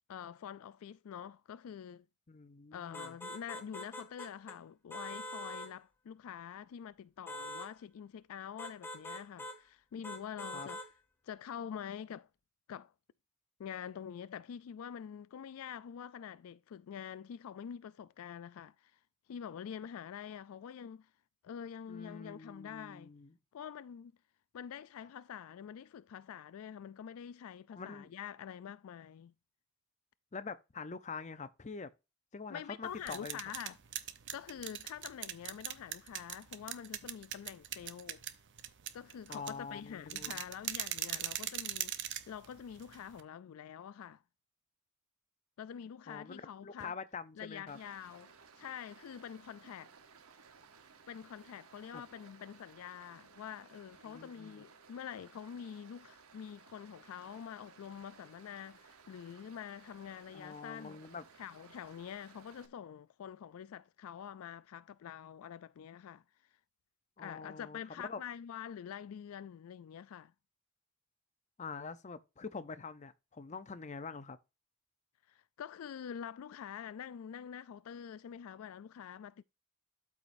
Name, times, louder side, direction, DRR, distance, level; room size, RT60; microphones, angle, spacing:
voice 1, 0.1-2.1 2.7-10.9 11.2-12.3 12.7-12.9 13.6-19.0 19.3-21.1 21.4-23.1 23.5-24.1 24.5-29.3 32.5-33.8 34.3-38.2 38.9-41.9 42.3-44.2 45.6-47.0 47.3-49.9 51.1-61.0 61.4-66.2 67.2-70.3 75.3-79.4, left 8 dB, 75° left, 0.3 m, -46 dB
voice 2, 2.3-3.1 10.5-10.7 21.9-23.3 27.7-28.1 30.3-31.9 32.3-33.4 39.3-40.4 46.1-47.8 51.9-52.0 54.0-54.6 60.3-61.2 67.2-68.2 71.6-74.4, left 5 dB, 35° left, 0.6 m, -45 dB
sound 1, 2.9-4.6 4.9-5.7 7.3-7.7 8.6-9.6 10.0-10.9, left 1 dB, 10° left, 1.4 m, -44 dB
sound 2, 32.8-43.2, right 11 dB, 60° right, 0.7 m, -41 dB
Stream, 47.7-62.7, right 5 dB, 85° right, 1.0 m, -59 dB
12.5 x 4.8 x 2.6 m
head